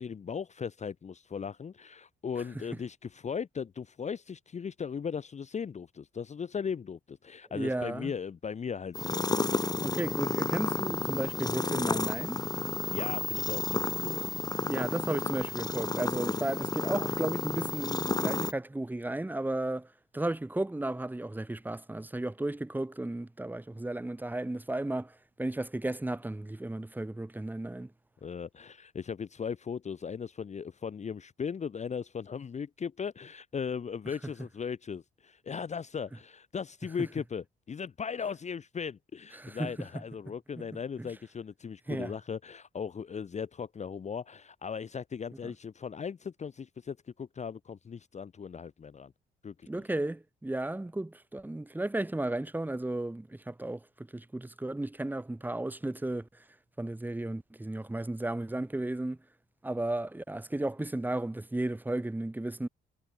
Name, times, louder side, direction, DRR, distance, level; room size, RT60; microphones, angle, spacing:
voice 1, 0.0-9.2 12.9-14.2 28.2-49.1 49.4-49.7, left 6 dB, 35° left, 0.9 m, -38 dB
voice 2, 7.5-8.1 9.8-12.4 14.6-19.9 20.1-27.9 39.4-40.0 40.6-40.7 41.0-41.1 41.9-42.1 45.4-45.5 49.7-56.3 56.8-59.2 59.6-62.7, right 2 dB, 10° right, 1.4 m, -34 dB
sound 1, 8.9-18.5, left 3 dB, 20° left, 1.3 m, -31 dB
cardioid pair, 90°, 20 cm